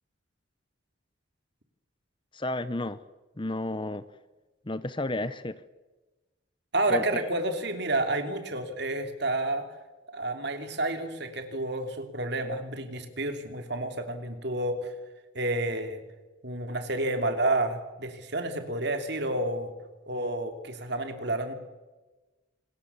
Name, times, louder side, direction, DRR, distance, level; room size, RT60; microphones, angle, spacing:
voice 1, 2.3-3.0 3.4-4.0 4.7-5.6 6.9-7.0, left 2 dB, 25° left, 14 dB, 0.7 m, -31 dB
voice 2, 6.7-9.7 10.1-14.9 15.3-16.0 16.4-19.7 20.1-21.5, right 2 dB, 55° right, 6 dB, 3.0 m, -30 dB
27.5 x 21.0 x 7.2 m, 1.2 s
head